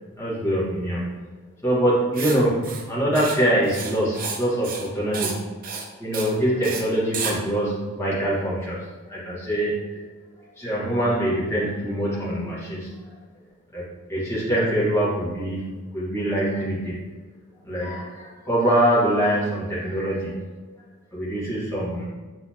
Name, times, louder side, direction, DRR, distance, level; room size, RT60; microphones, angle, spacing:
voice 1, 0.1-1.1 1.6-5.5 6.0-10.0 10.4-13.1 13.7-17.0 17.6-20.5 21.1-22.0, right 1 dB, 15° left, -8 dB, 1.3 m, -24 dB
Writing, 2.1-2.4 2.6-2.8 3.1-3.4 3.6-4.4 4.6-4.9 5.1-5.4 5.6-5.9 6.1-6.3 6.6-6.8 7.1-7.3, right 5 dB, 40° right, 0.6 m, -31 dB
6.5 x 3.0 x 2.7 m, 1.3 s
head